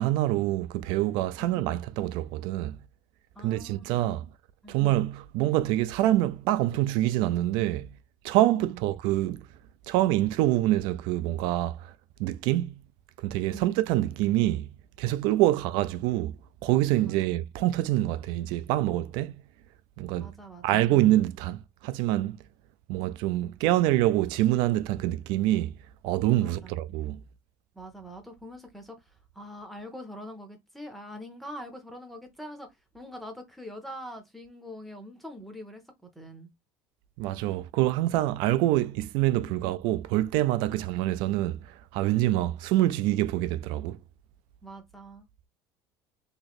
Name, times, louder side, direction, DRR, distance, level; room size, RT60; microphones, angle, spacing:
voice 1, 0.0-2.8 3.4-4.3 4.7-7.9 8.2-9.4 9.9-11.9 12.2-12.7 13.2-14.7 15.0-16.3 16.6-19.3 20.0-20.3 20.6-22.4 22.9-25.8 26.0-27.2 37.2-44.0, right 15 dB, 65° right, 0.4 m, -26 dB
voice 2, 3.4-4.1 4.6-4.8 8.6-8.8 13.5-13.7 15.5-15.6 17.0-17.4 20.2-20.9 26.4-26.8 27.7-32.7 32.9-35.8 36.1-36.5 39.5-39.7 40.7-40.8 44.6-45.3, equal, ahead, 0.6 m, -44 dB
3.0 x 2.6 x 4.0 m
cardioid pair, 175°, 9 cm